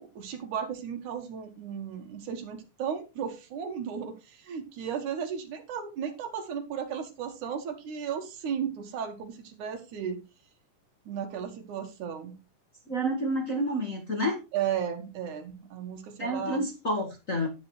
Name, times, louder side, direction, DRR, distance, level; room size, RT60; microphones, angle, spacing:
voice 1, 0.0-10.2 11.1-12.3 14.5-16.6, right 8 dB, 70° right, 7 dB, 3.0 m, -35 dB
voice 2, 12.9-14.4 16.2-17.5, equal, 35° left, 0 dB, 1.5 m, -29 dB
11.5 x 9.6 x 3.1 m, 0.28 s
omnidirectional pair, 3.6 m